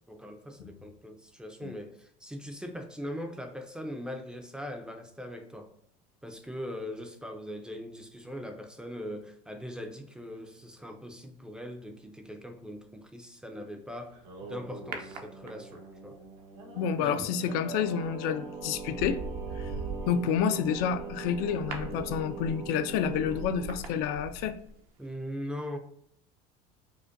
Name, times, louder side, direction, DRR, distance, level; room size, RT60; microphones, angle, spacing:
voice 1, 0.1-5.7 6.2-14.2 14.4-16.2 17.0-17.3 25.0-25.8, equal, 5° right, 0.4 m, -40 dB
Singing, 14.0-23.8, right 4 dB, 80° right, 1.2 m, -42 dB
sound 1, 14.9-16.0 17.8-18.1 18.6-24.8 25.1-25.2, right 3 dB, 65° right, 0.7 m, -41 dB
voice 2, 16.8-19.2 19.6-19.7 20.1-24.6, left 7 dB, 70° left, 0.4 m, -29 dB
5.0 x 2.2 x 2.5 m
supercardioid pair, 120°, 17 cm